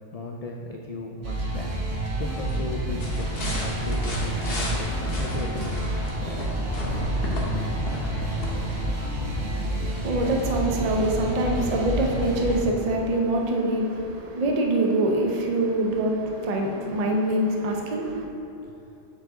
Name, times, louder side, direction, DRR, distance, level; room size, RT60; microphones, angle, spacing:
voice 1, 0.1-1.7 2.2-5.7 18.6-18.7, left 2 dB, 80° left, 0 dB, 0.3 m, -36 dB
sound 1, 1.2-12.6, right 1 dB, 75° right, 1.5 m, -29 dB
sound 2, 3.0-8.9, left 1 dB, 55° left, 1.2 m, -34 dB
voice 2, 9.8-18.3, right 1 dB, 40° right, 1 dB, 0.6 m, -24 dB
6.9 x 5.2 x 3.7 m, 2.7 s
omnidirectional pair, 1.2 m